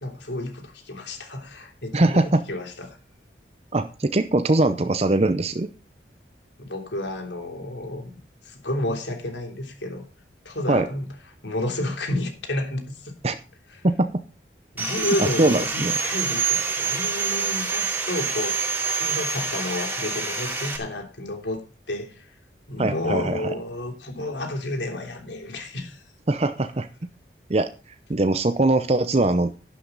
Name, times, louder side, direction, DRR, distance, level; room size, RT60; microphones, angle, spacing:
voice 1, 0.0-3.0 6.6-10.1 10.4-11.1 11.4-13.1 13.7-13.8 14.7-22.3 22.7-26.0, left 1 dB, 85° left, 3.3 m, -31 dB
voice 2, 1.9-2.4 3.7-5.7 10.7-10.9 13.2-13.4 13.8-14.1 15.2-15.9 22.8-23.4 26.3-26.9 27.5-27.7 28.1-29.5, right 2 dB, 35° right, 0.6 m, -21 dB
Sawing, 14.8-20.8, right 5 dB, 10° right, 2.5 m, -26 dB
11.5 x 11.0 x 3.9 m
head